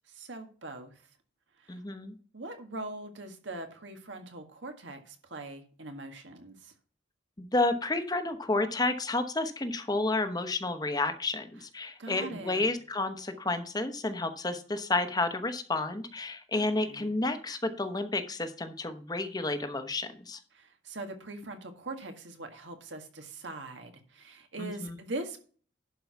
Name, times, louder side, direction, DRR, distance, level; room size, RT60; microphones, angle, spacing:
voice 1, 0.1-1.0 1.6-1.8 2.3-6.7 12.0-12.7 16.6-17.1 20.5-25.4, right 2 dB, 85° right, 5 dB, 1.8 m, -42 dB
voice 2, 1.7-2.1 7.4-20.4 24.6-25.0, left 2 dB, 20° left, 9 dB, 0.9 m, -31 dB
11.5 x 4.7 x 5.8 m, 0.42 s
head